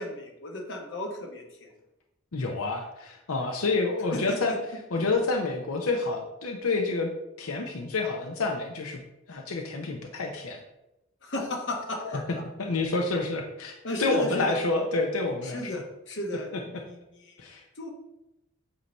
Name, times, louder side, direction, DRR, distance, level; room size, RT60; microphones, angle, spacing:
voice 1, 0.0-1.7 4.1-4.6 11.2-12.4 13.8-14.6 15.4-17.9, left 1 dB, 60° left, 1 dB, 1.2 m, -35 dB
voice 2, 2.3-4.6 4.9-7.1 7.4-9.0 9.3-10.6 12.0-12.2 12.6-15.8 17.4-17.6, left 3 dB, 90° left, 2 dB, 0.7 m, -28 dB
8.1 x 2.8 x 5.3 m, 0.91 s
head